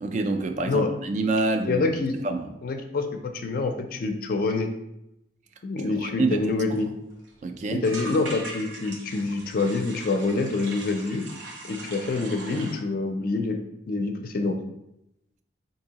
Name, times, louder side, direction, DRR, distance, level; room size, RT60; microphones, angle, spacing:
voice 1, 0.0-1.8 2.2-2.5 6.0-6.4 6.7-6.8 7.4-7.8, right 3 dB, 40° right, 6 dB, 0.3 m, -27 dB
voice 2, 1.6-2.1 2.6-3.1 3.3-4.7 5.6-6.9 7.7-11.2 11.7-13.6 13.9-14.6, left 3 dB, 50° left, 6 dB, 0.4 m, -26 dB
sound 1, 6.8-6.9 7.1-7.3 7.8-12.7, right 2 dB, 80° right, 0.9 m, -40 dB
4.5 x 2.7 x 2.8 m, 0.87 s
head